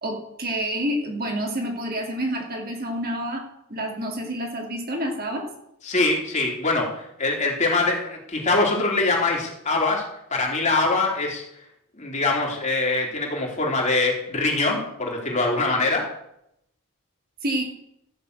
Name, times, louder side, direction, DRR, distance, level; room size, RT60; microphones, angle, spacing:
voice 1, 0.0-3.4 3.7-5.5 17.4-17.6, right 1 dB, 45° right, 1 dB, 2.8 m, -28 dB
voice 2, 5.8-11.4 12.0-16.0, left 3 dB, 35° left, -1 dB, 3.2 m, -23 dB
13.5 x 6.8 x 8.1 m, 0.80 s
head